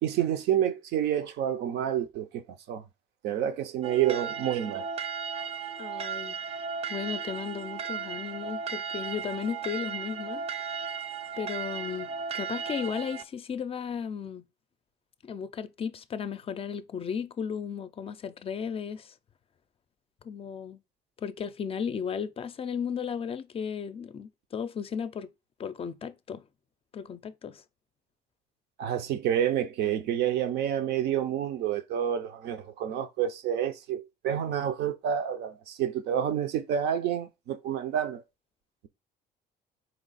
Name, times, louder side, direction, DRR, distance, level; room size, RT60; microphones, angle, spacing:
voice 1, 0.0-2.8 3.2-4.9 28.8-38.2, right 10 dB, 80° right, 0.6 m, -29 dB
sound 1, 3.8-13.2, right 6 dB, 35° right, 0.4 m, -36 dB
voice 2, 5.8-10.7 11.4-14.5 15.2-19.1 20.2-20.8 21.2-25.3 25.6-26.4 26.9-27.6, left 7 dB, 35° left, 0.4 m, -35 dB
4.4 x 2.7 x 4.0 m
cardioid pair, 110°, 17 cm